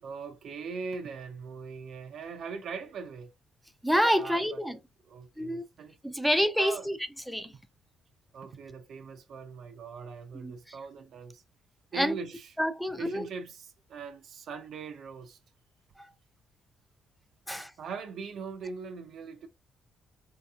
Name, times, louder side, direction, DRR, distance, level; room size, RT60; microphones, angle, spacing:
voice 1, 0.0-3.3 4.2-4.6 5.0-6.0 6.6-6.9 8.3-11.4 11.9-12.5 13.0-15.4 17.8-19.5, right 5 dB, 70° right, 0.5 m, -41 dB
voice 2, 3.8-4.8 5.4-5.6 6.0-7.0 7.3-7.5 10.3-10.5 11.9-12.1 12.6-13.3 17.5-17.7, equal, ahead, 0.5 m, -27 dB
3.3 x 2.8 x 2.3 m
cardioid pair, 90°, 0 cm